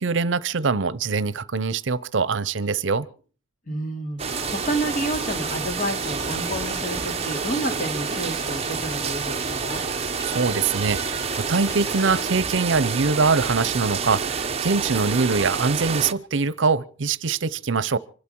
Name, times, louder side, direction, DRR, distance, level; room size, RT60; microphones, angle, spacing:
voice 1, 0.0-3.1 9.9-18.0, right 4 dB, 70° right, 0.7 m, -23 dB
voice 2, 3.7-9.8, right 1 dB, 45° left, 3.1 m, -30 dB
sound 1, 4.2-16.1, right 5 dB, 30° right, 0.7 m, -28 dB
sound 2, 4.3-12.3, left 1 dB, 20° left, 2.2 m, -39 dB
26.0 x 12.5 x 4.6 m
head